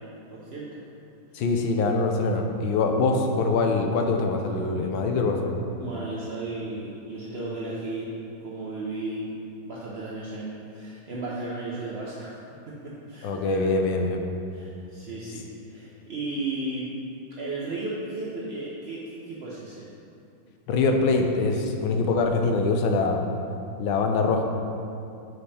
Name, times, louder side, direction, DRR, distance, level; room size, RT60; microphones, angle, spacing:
voice 1, 0.3-0.8 1.3-1.4 5.8-9.3 9.7-13.7 14.5-16.9 17.4-19.9, right 2 dB, 65° right, -6 dB, 0.6 m, -35 dB
voice 2, 1.3-5.6 13.2-14.2 20.7-23.2 23.8-24.4, left 3 dB, 75° left, 3 dB, 1.4 m, -24 dB
7.7 x 5.3 x 4.2 m, 2.6 s
omnidirectional pair, 2.2 m